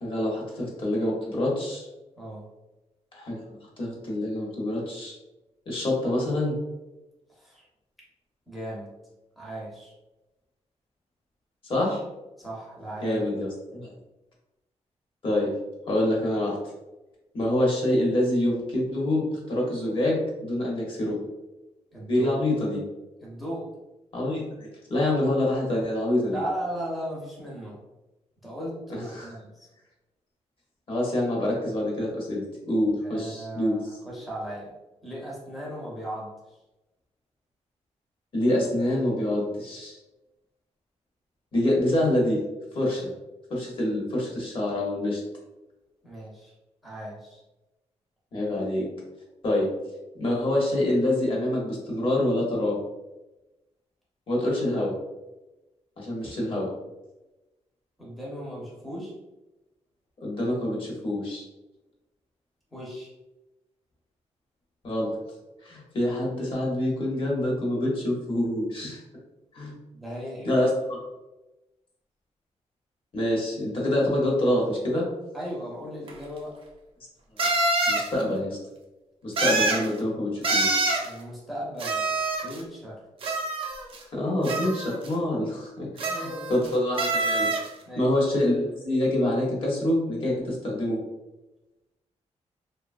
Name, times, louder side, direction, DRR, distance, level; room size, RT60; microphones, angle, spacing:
voice 1, 0.0-1.9 3.1-5.2 5.7-6.6 11.6-12.0 13.0-13.9 15.2-15.5 15.9-16.6 17.3-21.1 22.1-22.8 24.1-26.4 28.9-29.3 30.9-33.8 38.3-40.0 41.5-42.4 42.7-43.1 43.5-45.2 48.3-48.9 49.4-49.7 50.2-52.8 54.3-54.9 56.0-56.7 60.2-61.4 64.8-65.1 65.6-69.0 69.5-69.7 70.4-70.7 73.1-75.1 77.9-78.6 79.2-80.8 84.1-87.5 88.0-91.0, left 1 dB, 50° left, -3 dB, 0.8 m, -26 dB
voice 2, 2.2-2.5 7.3-7.7 8.5-8.9 9.4-9.9 12.4-13.2 21.9-22.4 23.2-23.7 26.3-27.8 28.4-29.7 33.0-34.7 35.0-36.6 46.0-46.5 46.8-47.4 58.0-59.1 62.7-63.1 69.9-70.7 75.3-76.6 81.0-83.0 84.2-84.3 86.1-86.7 87.9-88.1, equal, ahead, -5 dB, 0.6 m, -37 dB
sound 1, 76.1-76.2 77.4-78.1 79.4-79.9 80.4-81.1 81.8-82.6 83.2-84.0 84.4-85.1 86.0-86.7 87.0-87.7, right 2 dB, 50° right, 0.4 m, -26 dB
2.7 x 2.3 x 2.4 m, 1.0 s
wide cardioid pair, 165°, 12 cm